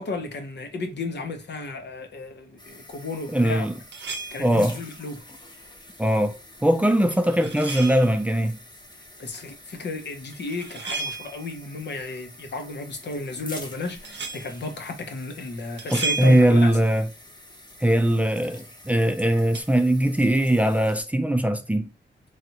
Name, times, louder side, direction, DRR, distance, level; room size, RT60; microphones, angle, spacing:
voice 1, 0.0-3.7 4.3-5.2 9.2-16.8, left 3 dB, 60° left, 0.8 m, -33 dB
sound 1, 2.6-21.0, left 1 dB, 20° left, 0.9 m, -47 dB
voice 2, 3.3-3.8 4.4-4.8 6.0-6.4 6.6-8.6 15.9-17.1 17.8-21.9, right 1 dB, 5° right, 0.4 m, -20 dB
sound 2, 3.9-4.7 7.1-8.3 10.3-11.6 14.0-14.5 15.8-16.8 19.5-19.6, right 4 dB, 70° right, 0.7 m, -33 dB
3.2 x 2.5 x 2.8 m
cardioid pair, 80°, 20 cm